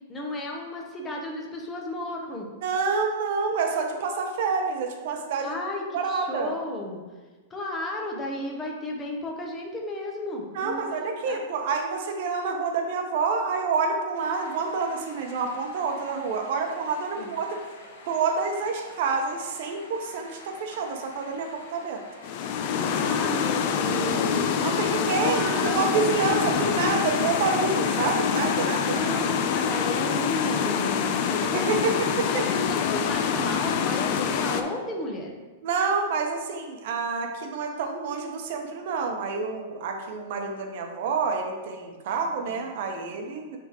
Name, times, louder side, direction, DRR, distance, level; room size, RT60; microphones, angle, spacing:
voice 1, 0.1-2.5 5.4-7.0 7.5-10.8 11.2-11.4 17.2-17.3 22.8-24.7 25.2-26.3 28.4-31.9 32.3-35.3 42.5-42.6, left 1 dB, 15° left, 0 dB, 0.9 m, -34 dB
voice 2, 2.6-5.6 5.9-6.5 10.5-17.6 18.1-22.0 24.6-29.1 31.5-32.4 35.6-43.6, right 4 dB, 55° right, 3 dB, 0.9 m, -28 dB
sound 1, 14.1-33.1, left 2 dB, 60° left, 1.1 m, -48 dB
sound 2, 22.2-34.6, left 7 dB, 45° left, 0.4 m, -26 dB
9.0 x 3.6 x 3.0 m, 1.3 s
supercardioid pair, 155°, 0 cm